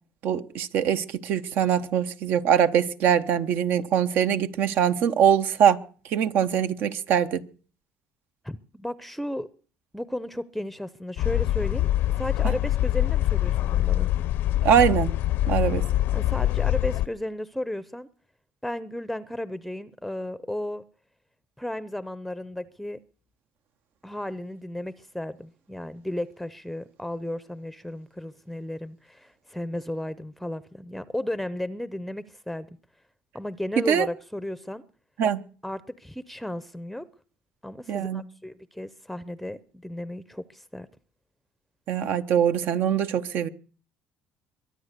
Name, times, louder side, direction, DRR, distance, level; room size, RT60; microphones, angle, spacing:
voice 1, 0.2-5.8 6.1-7.4 12.4-12.5 14.6-15.1 15.5-15.8 33.8-34.1 35.2-35.4 37.9-38.2 41.9-43.5, right 8 dB, 60° right, 1.0 m, -23 dB
voice 2, 8.4-9.5 9.9-11.9 12.2-14.1 16.1-18.1 18.6-20.8 21.6-23.0 24.0-32.8 33.3-34.8 35.6-37.1 37.6-40.9, left 1 dB, ahead, 0.7 m, -34 dB
sound 1, 11.2-17.1, left 14 dB, 70° left, 0.7 m, -24 dB
23.0 x 8.9 x 6.7 m
cardioid pair, 110°, 4 cm